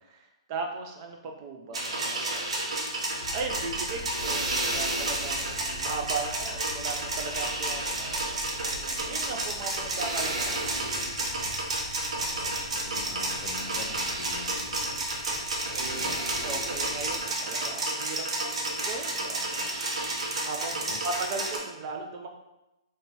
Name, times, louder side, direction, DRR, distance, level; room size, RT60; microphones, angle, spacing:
voice 1, 0.1-2.5 3.3-10.9 15.7-16.1 16.4-19.9 20.4-20.8 21.0-22.3, right 4 dB, 35° right, 2 dB, 0.3 m, -37 dB
sound 1, 1.7-21.6, right 2 dB, 90° right, 0.6 m, -31 dB
sound 2, 3.2-17.2, left 2 dB, 80° left, 0.7 m, -45 dB
voice 2, 12.1-14.8 15.9-16.2 20.7-21.0, left 4 dB, 45° left, 2 dB, 0.4 m, -44 dB
2.8 x 2.2 x 2.7 m, 0.97 s
hypercardioid pair, 155°, 3 cm